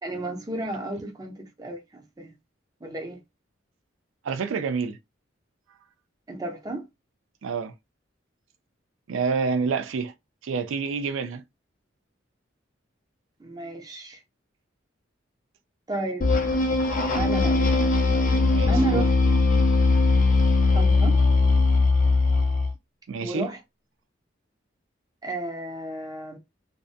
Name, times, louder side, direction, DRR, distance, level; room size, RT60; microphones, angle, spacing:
voice 1, 0.0-2.3 2.8-3.2 6.3-6.9 13.4-14.2 15.9-16.3 17.1-17.7 18.7-19.1 20.7-21.2 23.2-23.6 25.2-26.4, right 2 dB, 20° right, 0.6 m, -32 dB
voice 2, 4.2-5.0 7.4-7.7 9.1-10.1 10.4-11.4 18.5-19.1 23.1-23.5, right 5 dB, 85° right, 0.4 m, -28 dB
sound 1, 16.2-22.7, left 3 dB, 45° left, 0.5 m, -20 dB
2.6 x 2.2 x 2.4 m
head